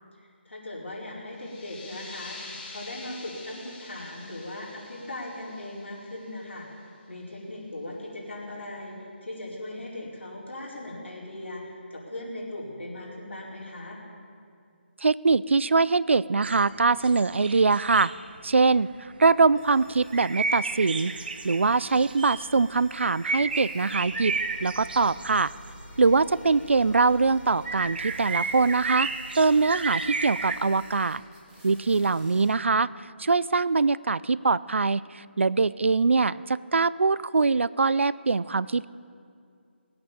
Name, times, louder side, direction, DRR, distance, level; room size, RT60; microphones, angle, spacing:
voice 1, 0.2-14.0, left 1 dB, 75° left, -4 dB, 4.7 m, -39 dB
sound 1, 1.3-6.7, left 3 dB, 10° left, 1.7 m, -46 dB
voice 2, 15.0-18.1 18.4-21.1 21.4-24.3 24.6-25.5 26.0-29.1 29.4-31.2 31.6-32.9 33.2-38.9, right 4 dB, 85° right, 19 dB, 0.4 m, -23 dB
sound 2, 16.4-30.6, right 4 dB, 55° right, 0.9 m, -33 dB
sound 3, 19.5-32.5, equal, 10° right, 2.1 m, -50 dB
19.0 x 8.8 x 7.0 m, 2.4 s
figure-of-eight pair, 160°, 6 cm